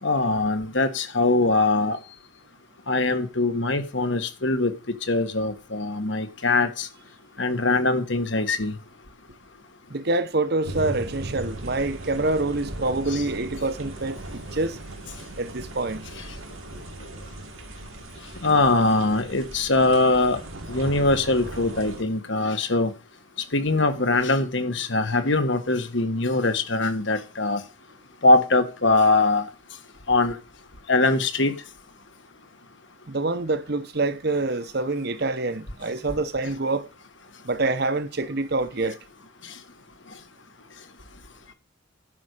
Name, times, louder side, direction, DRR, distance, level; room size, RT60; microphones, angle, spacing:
voice 1, 0.0-2.0 2.9-4.7 5.0-6.9 7.4-8.8 13.1-13.2 18.4-20.4 20.7-22.9 23.5-27.6 28.2-29.5 30.1-30.4 30.9-31.5, left 2 dB, 65° left, 1.5 m, -22 dB
voice 2, 9.9-14.8 15.4-16.1 33.1-36.9 37.4-39.0, right 2 dB, 50° right, 1.0 m, -26 dB
sound 1, 10.6-22.0, right 1 dB, 85° right, 2.2 m, -38 dB
11.0 x 5.4 x 8.2 m
head